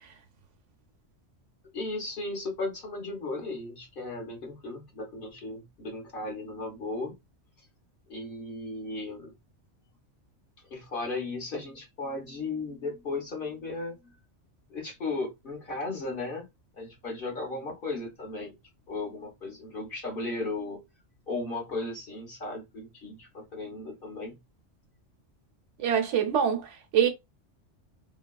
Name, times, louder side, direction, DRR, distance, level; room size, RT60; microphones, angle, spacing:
voice 1, 1.7-7.1 8.1-9.3 10.7-14.1 14.7-16.5 16.7-18.5 18.9-20.8 21.3-24.4, left 2 dB, 50° left, 1.1 m, -36 dB
voice 2, 25.8-27.1, right 8 dB, 75° right, 0.9 m, -25 dB
2.9 x 2.2 x 2.2 m
omnidirectional pair, 1.3 m